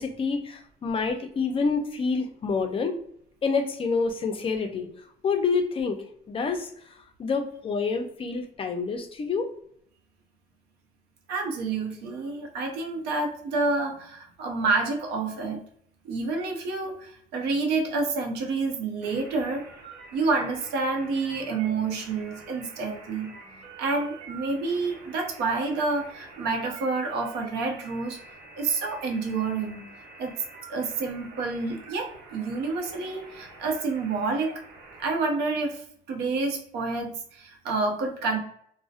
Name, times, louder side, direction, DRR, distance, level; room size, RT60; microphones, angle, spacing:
voice 1, 0.0-3.0 3.4-4.9 5.2-6.7 7.2-9.5, left 4 dB, 30° left, 5 dB, 0.4 m, -27 dB
voice 2, 11.3-15.6 16.0-19.6 20.1-23.3 23.8-28.2 28.5-29.8 30.2-30.3 30.7-34.6 35.0-38.4, right 3 dB, 80° right, 3 dB, 0.6 m, -28 dB
sound 1, 19.0-35.1, right 3 dB, 60° right, 1.0 m, -47 dB
2.6 x 2.0 x 2.3 m, 0.65 s
cardioid pair, 110°, 17 cm